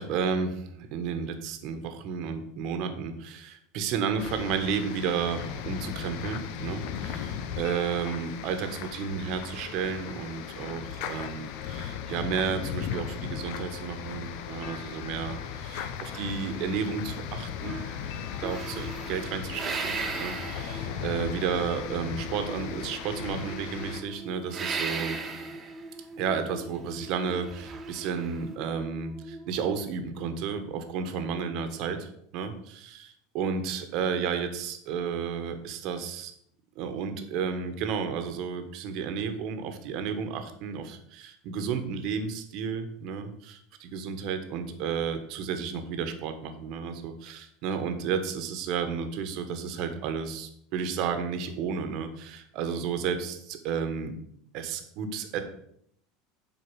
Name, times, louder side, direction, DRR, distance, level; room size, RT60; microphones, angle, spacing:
voice 1, 0.0-17.8 18.4-25.2 26.2-36.3 36.7-54.1 54.5-55.4, right 6 dB, 60° right, 7 dB, 1.3 m, -32 dB
sound 1, 4.2-24.0, left 8 dB, 65° left, 0.8 m, -37 dB
sound 2, 16.1-17.4 17.6-21.4 22.9-24.0 24.5-25.8 27.3-28.4, right 5 dB, 30° right, 1.3 m, -37 dB
sound 3, 18.4-30.9, right 2 dB, 10° right, 0.7 m, -44 dB
8.0 x 4.9 x 6.3 m, 0.71 s
hypercardioid pair, 95°, 0 cm